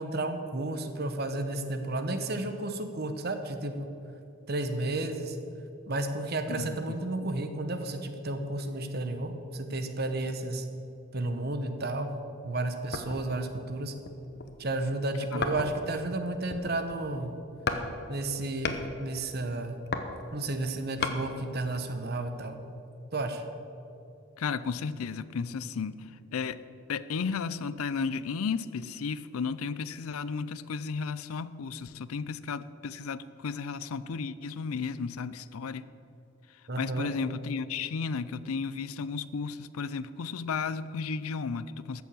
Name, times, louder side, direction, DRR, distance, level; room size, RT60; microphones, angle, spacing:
voice 1, 0.0-3.9 4.5-5.4 5.9-10.7 11.1-12.1 12.4-13.9 14.6-17.3 18.1-18.7 19.0-19.8 20.3-22.6 23.1-23.4 36.7-37.1, right 2 dB, 45° right, 1.0 m, -32 dB
voice 2, 6.5-7.3 15.3-15.4 24.4-26.6 26.9-35.9 36.8-42.0, left 5 dB, 85° left, 0.5 m, -34 dB
sound 1, 12.9-13.4 14.0-14.6 15.4-16.0 16.3-17.0 17.7-17.9 18.2-18.9 19.6-21.2 21.7-21.8, left 4 dB, 50° left, 0.9 m, -34 dB
13.5 x 7.1 x 7.5 m
head